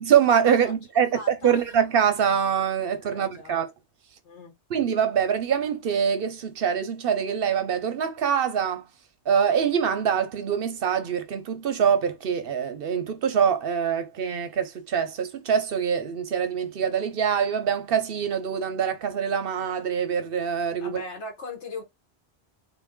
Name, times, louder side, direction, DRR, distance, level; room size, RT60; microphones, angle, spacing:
voice 1, 0.0-3.7 4.7-8.8 9.3-21.0, right 7 dB, 60° right, 0.8 m, -24 dB
voice 2, 1.1-1.6 2.9-3.5 4.2-4.5 20.8-21.8, left 3 dB, 80° left, 1.7 m, -39 dB
3.5 x 2.4 x 3.6 m
omnidirectional pair, 1.1 m